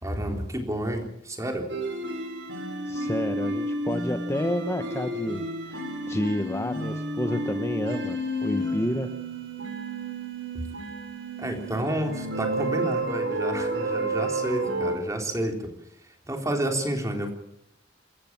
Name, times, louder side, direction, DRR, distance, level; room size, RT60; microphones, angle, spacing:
voice 1, 0.0-1.7 10.5-10.6 11.4-15.7 16.0-17.3, right 1 dB, 15° right, 3 dB, 3.6 m, -30 dB
sound 1, 1.7-15.0, right 1 dB, 75° right, 4.6 m, -31 dB
voice 2, 2.9-9.1, left 1 dB, 15° left, 7 dB, 1.0 m, -30 dB
27.5 x 14.5 x 7.4 m, 0.78 s
head